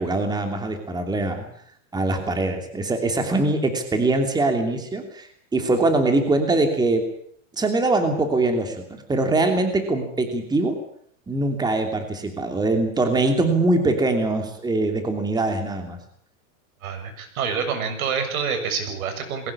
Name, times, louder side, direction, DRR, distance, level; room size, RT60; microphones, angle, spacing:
voice 1, 0.0-1.5 1.9-5.3 5.5-7.0 7.5-10.7 11.3-16.0, right 2 dB, 10° right, 5 dB, 3.0 m, -22 dB
voice 2, 16.8-19.5, right 6 dB, 85° right, 7 dB, 7.0 m, -27 dB
22.0 x 18.0 x 8.7 m, 0.64 s
supercardioid pair, 150°, 41 cm